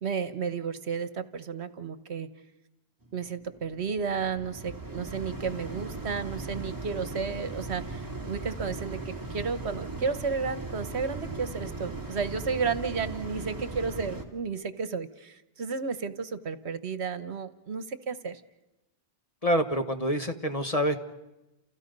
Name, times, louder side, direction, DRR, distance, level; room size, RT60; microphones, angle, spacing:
voice 1, 0.0-2.3 3.1-18.4, right 5 dB, 70° right, 12 dB, 1.4 m, -32 dB
sound 1, 3.0-14.2, right 3 dB, 15° right, 2.6 m, -38 dB
voice 2, 19.4-21.0, equal, 30° left, 6 dB, 1.6 m, -26 dB
29.5 x 29.0 x 5.4 m, 0.99 s
omnidirectional pair, 1.2 m